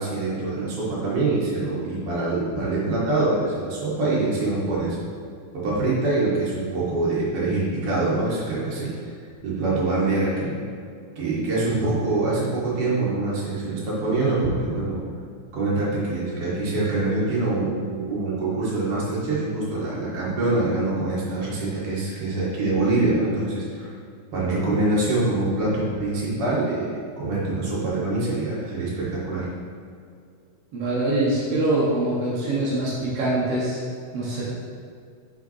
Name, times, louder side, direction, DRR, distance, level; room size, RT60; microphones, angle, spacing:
voice 1, 0.0-5.0 5.5-8.9 9.4-10.5 11.2-15.0 15.5-23.9 24.3-26.9 27.2-29.5, right 2 dB, 55° right, -6 dB, 1.7 m, -24 dB
voice 2, 30.7-33.8 34.1-34.4, right 2 dB, 70° right, -8 dB, 1.4 m, -24 dB
5.8 x 5.7 x 4.3 m, 2.3 s
omnidirectional pair, 4.6 m